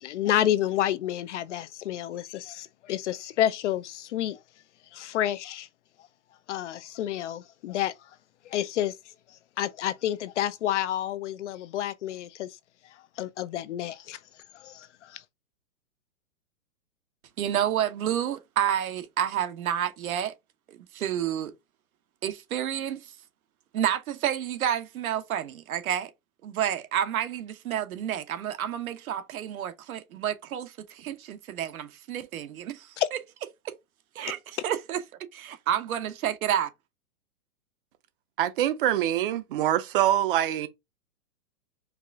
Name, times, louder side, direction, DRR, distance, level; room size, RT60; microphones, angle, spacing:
voice 1, 0.0-4.4 4.9-5.7 6.5-7.9 8.5-9.0 9.6-12.5 13.2-14.2 14.5-15.2 33.0-33.1, left 12 dB, 55° left, 0.5 m, -29 dB
voice 2, 17.4-20.3 20.7-21.5 22.2-23.1 23.7-26.1 26.4-33.0 33.6-33.7 34.1-35.0 35.3-36.7, right 10 dB, 75° right, 1.0 m, -30 dB
voice 3, 38.4-40.7, right 12 dB, 40° right, 0.6 m, -24 dB
4.7 x 2.4 x 3.5 m
hypercardioid pair, 160°, 43 cm